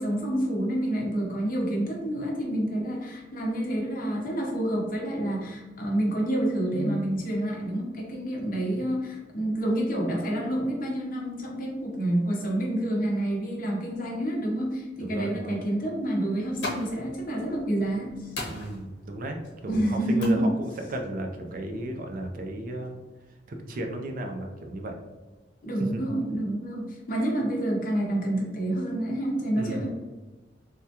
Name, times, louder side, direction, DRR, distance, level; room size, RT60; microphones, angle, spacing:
voice 1, 0.0-18.3 19.7-20.5 25.6-29.9, right 1 dB, 50° left, -2 dB, 0.7 m, -28 dB
voice 2, 15.0-15.6 18.5-23.0 23.5-25.0 25.8-26.1 29.6-29.9, right 1 dB, 50° right, 3 dB, 0.4 m, -34 dB
sound 1, 16.3-22.3, left 2 dB, 90° left, 1.0 m, -41 dB
3.5 x 2.2 x 2.8 m, 1.2 s
head